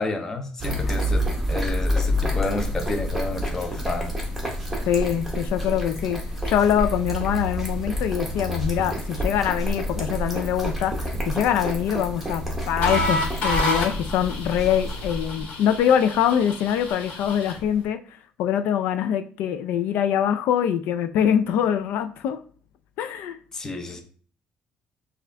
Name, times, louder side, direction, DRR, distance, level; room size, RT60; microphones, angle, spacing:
voice 1, 0.0-4.1 23.5-24.0, left 3 dB, 15° left, 4 dB, 0.6 m, -30 dB
sound 1, 0.6-15.4, equal, ahead, 1.0 m, -28 dB
voice 2, 4.9-18.0 18.4-22.4 23.0-23.4, left 9 dB, 85° left, 10 dB, 0.4 m, -24 dB
sound 2, 12.8-17.7, left 2 dB, 65° left, 1.4 m, -29 dB
5.9 x 2.4 x 3.3 m, 0.43 s
cardioid pair, 170°, 3 cm